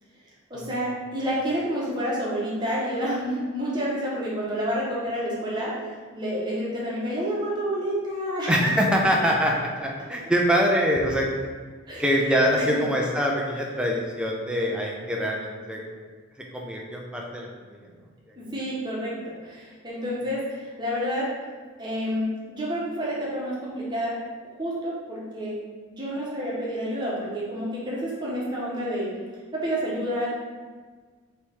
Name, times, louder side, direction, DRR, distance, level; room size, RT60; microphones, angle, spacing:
voice 1, 0.5-8.7 11.9-12.0 12.5-12.8 18.4-21.3 21.8-24.2 24.5-25.5 25.9-29.1 29.5-30.3, equal, 20° right, -6 dB, 1.0 m, -29 dB
voice 2, 8.5-11.3 12.0-15.8 16.5-17.5, equal, 5° right, -1 dB, 0.5 m, -24 dB
3.4 x 3.1 x 4.4 m, 1.5 s
head